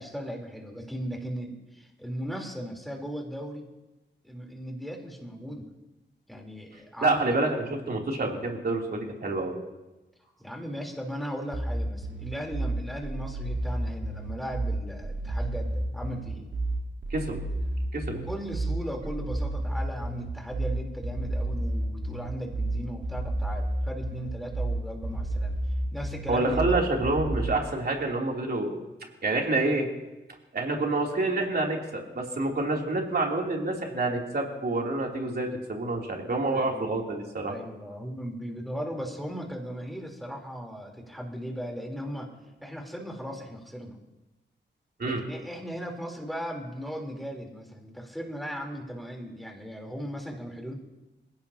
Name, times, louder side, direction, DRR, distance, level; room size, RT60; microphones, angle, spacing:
voice 1, 0.0-3.7 4.2-5.7 6.3-7.5 10.2-16.5 18.1-25.6 25.9-26.9 36.5-37.0 37.4-42.3 42.6-44.0 45.0-50.7, equal, ahead, 0 dB, 3.8 m, -37 dB
voice 2, 7.0-9.6 17.1-17.4 17.9-18.2 26.3-28.8 29.2-29.9 30.5-37.5 45.0-45.2, right 2 dB, 55° right, -1 dB, 3.3 m, -27 dB
sound 1, 11.5-27.5, right 1 dB, 80° right, 2.6 m, -31 dB
27.5 x 17.0 x 2.9 m, 1.0 s
wide cardioid pair, 105°, 19 cm